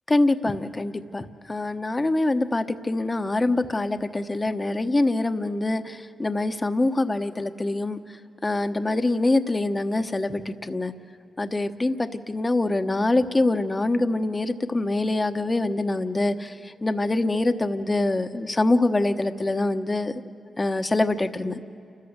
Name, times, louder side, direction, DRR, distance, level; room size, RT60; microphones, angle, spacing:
voice 1, 0.1-8.0 8.4-10.9 11.4-16.5 16.8-20.1 20.6-21.6, left 2 dB, 30° left, 8 dB, 1.1 m, -24 dB
29.5 x 14.0 x 8.0 m, 2.6 s
cardioid pair, 55°, 0 cm